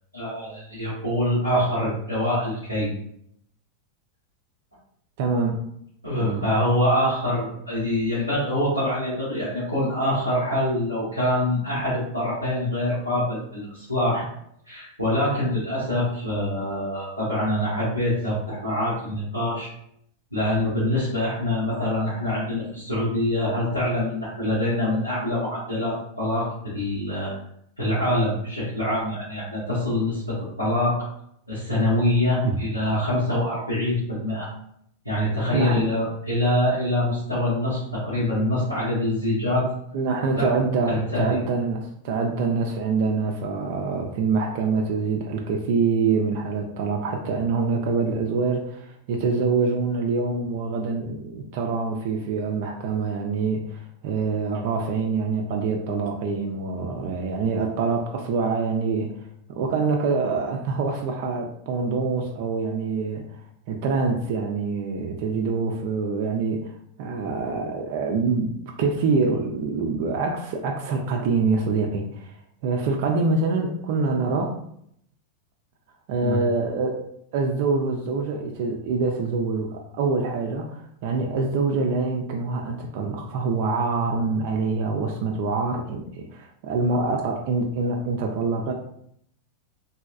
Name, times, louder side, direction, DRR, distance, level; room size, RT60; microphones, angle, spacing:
voice 1, 0.1-2.9 6.0-14.2 14.7-19.7 20.3-27.3 27.8-31.1 31.5-34.5 35.0-39.7 40.4-40.5 40.9-41.4 76.2-76.4, left 1 dB, 90° left, -10 dB, 1.0 m, -25 dB
voice 2, 5.2-5.6 6.2-6.5 32.4-32.6 35.5-35.8 39.9-59.2 59.5-63.4 63.7-66.7 67.0-72.4 72.6-74.6 76.1-77.0 77.3-88.7, right 4 dB, 50° right, 2 dB, 0.3 m, -25 dB
3.0 x 2.7 x 2.4 m, 0.71 s
figure-of-eight pair, 90°, 0 cm